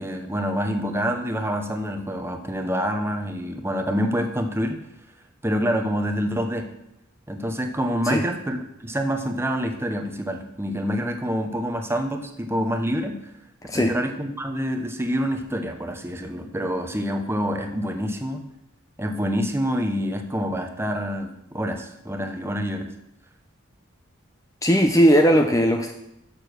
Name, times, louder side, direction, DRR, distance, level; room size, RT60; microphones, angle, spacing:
voice 1, 0.0-4.8 5.4-6.7 7.3-13.1 13.7-18.5 19.0-22.9, equal, 10° right, 5 dB, 0.8 m, -27 dB
voice 2, 24.6-25.9, equal, 15° left, 4 dB, 0.5 m, -18 dB
6.8 x 6.8 x 6.2 m, 0.82 s
head